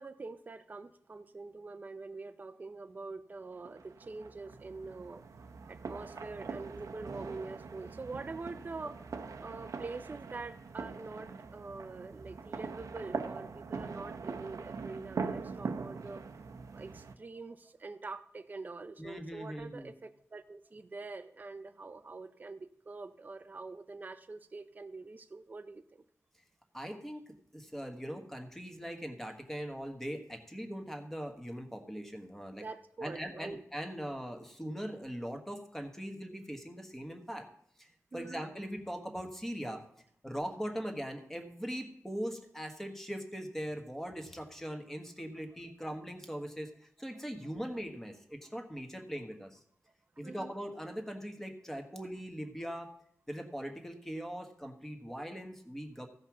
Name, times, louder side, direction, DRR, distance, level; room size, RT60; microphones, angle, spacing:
voice 1, 0.0-5.2 5.7-9.0 9.4-16.2 16.7-26.0 32.5-33.6 38.1-38.4 50.2-50.6, right 3 dB, 35° right, 8 dB, 0.6 m, -45 dB
sound 1, 3.7-17.1, right 5 dB, 85° right, 0.8 m, -42 dB
voice 2, 19.0-19.9 26.7-32.6 33.0-37.4 37.8-39.8 40.2-49.6 50.2-52.9 53.3-56.1, equal, 5° left, 4 dB, 1.4 m, -41 dB
15.0 x 5.6 x 6.0 m, 0.68 s
wide cardioid pair, 150°, 5 cm